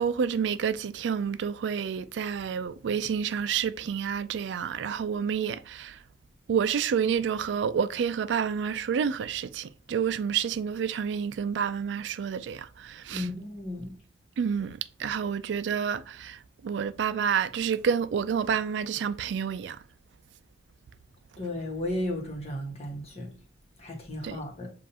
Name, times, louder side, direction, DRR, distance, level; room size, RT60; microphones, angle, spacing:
voice 1, 0.0-6.0 6.5-13.3 14.4-19.8 24.2-24.4, right 7 dB, 80° right, 0.3 m, -29 dB
voice 2, 13.1-14.0 21.4-23.3 23.8-24.7, left 1 dB, 35° left, 1.3 m, -34 dB
7.3 x 2.5 x 2.8 m
head